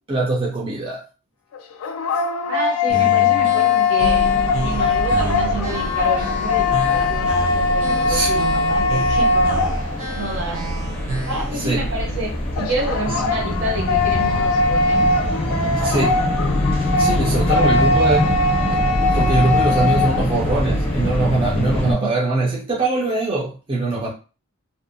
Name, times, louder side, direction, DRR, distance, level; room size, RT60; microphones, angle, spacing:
voice 1, 0.1-1.0 8.0-8.3 11.5-11.8 13.1-13.2 15.8-16.2 17.0-18.4 18.7-24.1, right 2 dB, 25° right, 0.4 m, -22 dB
sound 1, 1.5-10.2 12.6-20.3, left 4 dB, 70° left, 0.3 m, -20 dB
voice 2, 2.4-9.7 10.1-10.7 11.2-15.1 15.5-16.3 17.4-18.3 21.7-22.1, right 2 dB, 55° right, 0.7 m, -29 dB
sound 2, 2.9-11.6, right 1 dB, 85° right, 0.8 m, -31 dB
sound 3, 4.0-21.9, left 1 dB, 25° left, 0.6 m, -24 dB
2.6 x 2.0 x 2.5 m
head